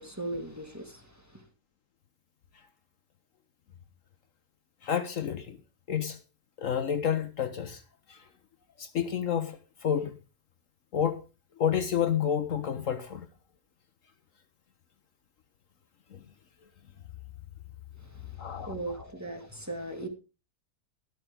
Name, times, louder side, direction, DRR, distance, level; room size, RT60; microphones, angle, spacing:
voice 1, 0.0-1.4 18.0-20.1, right 2 dB, 10° right, 2.0 m, -39 dB
voice 2, 4.8-5.6 5.9-6.2 6.6-7.8 8.1-8.2 8.8-10.2 10.9-11.2 11.6-13.3 16.1-16.2 18.4-18.7, left 8 dB, 60° left, 1.3 m, -29 dB
12.5 x 12.0 x 3.7 m
omnidirectional pair, 1.6 m